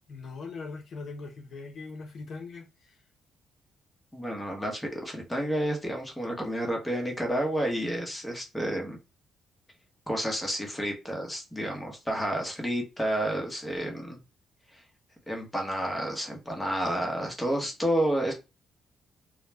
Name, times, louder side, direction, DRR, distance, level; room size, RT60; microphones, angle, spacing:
voice 1, 0.1-3.0, left 4 dB, 55° left, 0.6 m, -41 dB
voice 2, 4.1-9.0 10.1-14.2 14.7-14.8 15.3-18.3, equal, 10° left, 0.9 m, -30 dB
2.3 x 2.0 x 3.2 m
cardioid pair, 90°, 0 cm